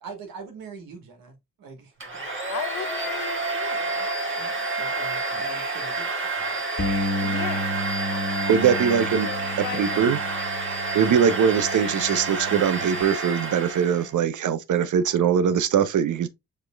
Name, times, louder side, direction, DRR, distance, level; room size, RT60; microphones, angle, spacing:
voice 1, 0.0-2.4 4.3-6.6, right 4 dB, 85° right, 1.4 m, -43 dB
Domestic sounds home sounds, 2.0-14.1, right 3 dB, 35° right, 1.7 m, -29 dB
voice 2, 2.5-4.1 7.2-7.7 8.7-10.3, left 11 dB, 75° left, 0.7 m, -37 dB
Bass guitar, 6.8-13.0, left 1 dB, 45° left, 1.3 m, -32 dB
voice 3, 8.5-9.3 9.7-10.2 10.9-16.3, right 7 dB, 60° right, 0.7 m, -21 dB
6.6 x 3.0 x 2.2 m
supercardioid pair, 40°, 35 cm